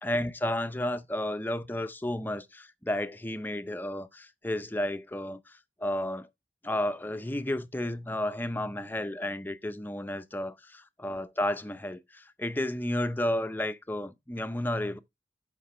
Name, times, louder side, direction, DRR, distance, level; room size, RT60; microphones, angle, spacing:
voice 1, 0.0-6.3 6.6-15.0, left 1 dB, 10° left, 0.5 m, -32 dB
12.5 x 5.2 x 3.2 m
head